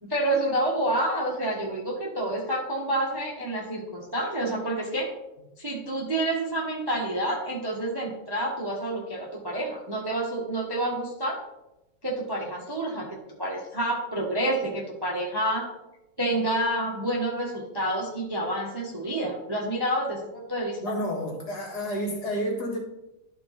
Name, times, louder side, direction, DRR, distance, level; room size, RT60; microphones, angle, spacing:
voice 1, 0.0-5.1 5.6-11.4 12.0-15.7 16.2-20.8, right 1 dB, 15° right, -2 dB, 1.0 m, -28 dB
voice 2, 20.8-22.8, equal, 50° left, -1 dB, 2.0 m, -30 dB
12.0 x 4.1 x 4.2 m, 0.94 s
omnidirectional pair, 2.4 m